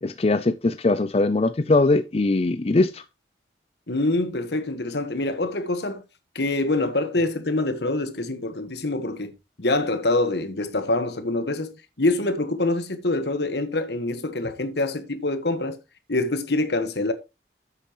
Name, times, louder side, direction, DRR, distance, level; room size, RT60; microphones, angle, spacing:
voice 1, 0.0-3.0, left 2 dB, 35° left, 0.5 m, -21 dB
voice 2, 3.9-6.0 6.3-9.3 9.6-15.8 16.1-17.1, left 2 dB, 70° left, 1.5 m, -25 dB
11.0 x 8.4 x 3.1 m
head